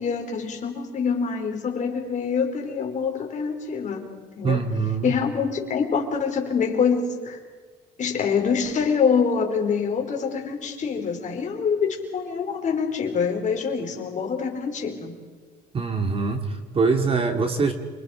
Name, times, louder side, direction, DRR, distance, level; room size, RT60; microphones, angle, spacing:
voice 1, 0.0-4.6 5.0-7.4 8.0-15.1, left 6 dB, 45° left, 3 dB, 4.7 m, -25 dB
voice 2, 4.4-5.1 15.7-17.7, right 4 dB, 35° right, 5 dB, 3.0 m, -23 dB
29.5 x 26.5 x 5.2 m, 1.5 s
cardioid pair, 110°, 17 cm